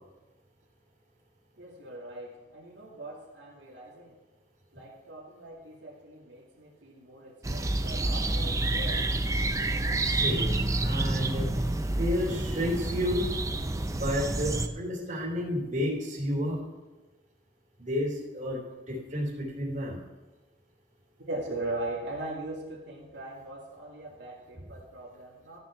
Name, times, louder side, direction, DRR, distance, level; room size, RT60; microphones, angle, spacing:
voice 1, 1.6-4.2 4.7-9.1 21.2-25.6, right 2 dB, 75° right, -4 dB, 2.3 m, -40 dB
sound 1, 7.4-14.7, right 2 dB, 15° right, 0.5 m, -28 dB
voice 2, 10.0-11.5 12.0-13.3 13.9-16.6 17.8-20.0, equal, 40° right, -2 dB, 3.2 m, -31 dB
13.0 x 6.1 x 5.8 m, 1.1 s
head